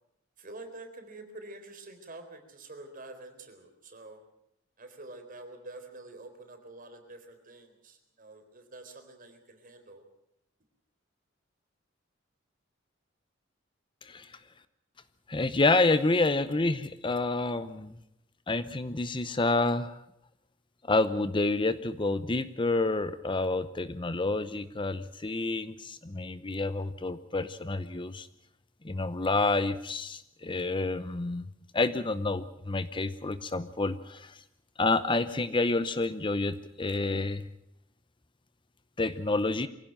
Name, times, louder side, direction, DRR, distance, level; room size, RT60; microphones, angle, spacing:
voice 1, 0.4-4.2 4.8-10.0, right 2 dB, 45° right, 6 dB, 4.0 m, -47 dB
voice 2, 14.0-14.3 15.3-18.0 18.5-19.9 20.8-28.3 28.8-31.4 31.7-34.4 34.8-37.4 39.0-39.7, left 2 dB, 25° left, 13 dB, 0.8 m, -28 dB
24.0 x 16.5 x 8.9 m, 0.80 s
head